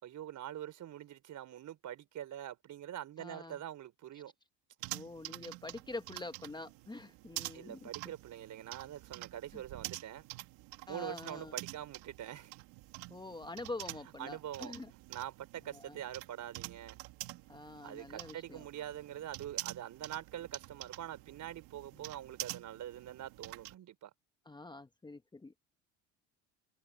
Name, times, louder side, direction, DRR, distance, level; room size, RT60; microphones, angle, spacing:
voice 1, 0.0-4.3 7.5-10.3 10.9-12.6 14.2-14.7 15.1-17.0 17.8-24.1, right 11 dB, 50° right, 4.2 m, -44 dB
voice 2, 3.2-3.6 4.9-7.9 9.5-9.6 10.9-11.5 13.1-14.9 15.7-16.0 17.5-18.7 24.4-25.6, left 2 dB, 10° left, 1.0 m, -46 dB
sound 1, 4.8-23.7, right 20 dB, 70° right, 2.2 m, -47 dB
supercardioid pair, 90°, 38 cm